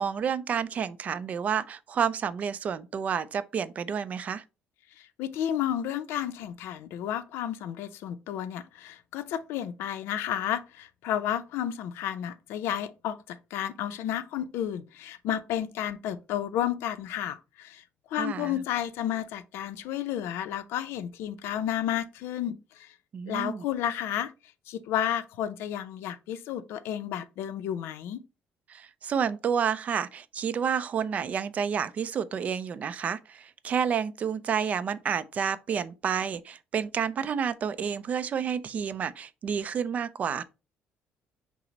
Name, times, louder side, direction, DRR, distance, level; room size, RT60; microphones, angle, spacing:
voice 1, 0.0-4.4 18.2-18.6 23.1-23.6 28.7-40.4, right 7 dB, 40° right, 0.3 m, -30 dB
voice 2, 5.0-17.8 18.1-22.9 23.3-24.3 24.7-28.2, left 10 dB, 85° left, 0.5 m, -32 dB
5.7 x 2.0 x 3.9 m
cardioid pair, 145°, 4 cm